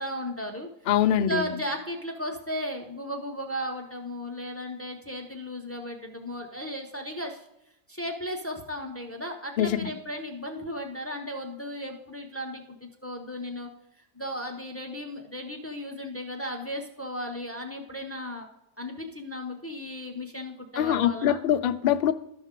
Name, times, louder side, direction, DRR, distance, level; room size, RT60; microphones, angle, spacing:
voice 1, 0.0-0.7 1.1-7.4 7.9-13.7 14.2-18.5 18.8-21.4, equal, 20° left, 3 dB, 0.4 m, -35 dB
voice 2, 0.9-1.5 9.6-9.9 20.8-22.1, left 10 dB, 75° left, 8 dB, 0.5 m, -23 dB
13.0 x 5.4 x 3.7 m, 0.82 s
omnidirectional pair, 1.5 m